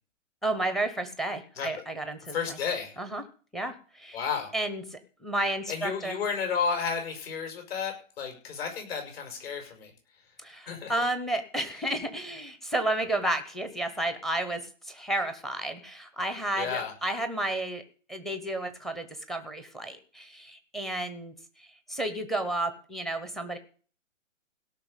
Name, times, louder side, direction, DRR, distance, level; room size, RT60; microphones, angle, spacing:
voice 1, 0.4-2.6 3.0-3.2 3.5-4.2 4.5-6.2 10.4-17.8 18.1-23.6, right 1 dB, ahead, 9 dB, 0.8 m, -32 dB
voice 2, 2.3-3.0 4.1-4.5 5.7-9.9 10.7-10.9 16.6-16.9, left 6 dB, 50° left, 4 dB, 6.2 m, -32 dB
17.0 x 6.0 x 8.2 m, 0.41 s
hypercardioid pair, 145°, 39 cm